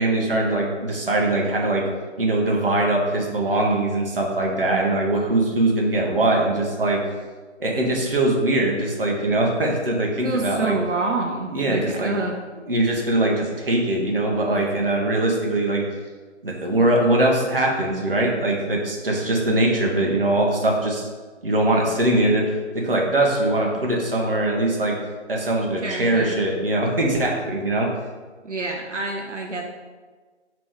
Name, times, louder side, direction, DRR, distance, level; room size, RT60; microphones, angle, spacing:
voice 1, 0.0-1.9 2.2-7.0 7.6-10.7 11.5-12.1 12.7-15.8 16.4-21.1 21.4-25.0 25.3-27.9, right 1 dB, 50° right, -1 dB, 0.9 m, -22 dB
voice 2, 10.2-12.3 25.8-26.3 28.4-29.7, right 3 dB, 80° right, 1 dB, 0.7 m, -27 dB
3.4 x 3.0 x 4.7 m, 1.4 s
figure-of-eight pair, 165°, 36 cm